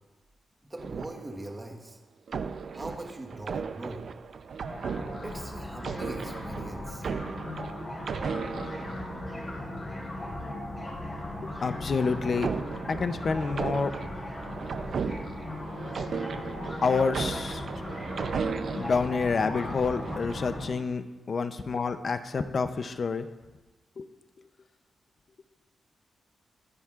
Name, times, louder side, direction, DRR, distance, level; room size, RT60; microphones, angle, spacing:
voice 1, 0.7-2.0 2.7-4.2 5.2-7.1, right 1 dB, 15° right, 2 dB, 1.3 m, -41 dB
sound 1, 0.8-1.7 2.3-9.6 11.5-19.1 19.7-20.5, right 6 dB, 50° right, 0.5 m, -36 dB
sound 2, 4.6-20.6, left 1 dB, 20° left, 4.5 m, -37 dB
voice 2, 11.4-12.5 12.9-13.9 16.8-17.6 18.7-23.3 24.0-24.1, left 4 dB, 40° left, 9 dB, 0.6 m, -28 dB
23.0 x 10.0 x 2.5 m, 1.2 s
wide cardioid pair, 175°, 0 cm